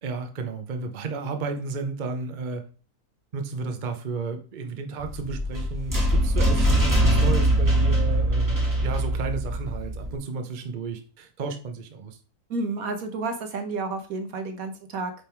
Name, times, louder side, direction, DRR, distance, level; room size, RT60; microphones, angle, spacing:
voice 1, 0.0-2.6 3.3-12.2, right 4 dB, 35° right, 5 dB, 0.9 m, -33 dB
sound 1, 5.0-10.1, equal, 15° right, 1.5 m, -22 dB
voice 2, 12.5-15.1, right 3 dB, 70° right, 7 dB, 1.4 m, -30 dB
8.6 x 3.7 x 4.5 m, 0.38 s
omnidirectional pair, 1.6 m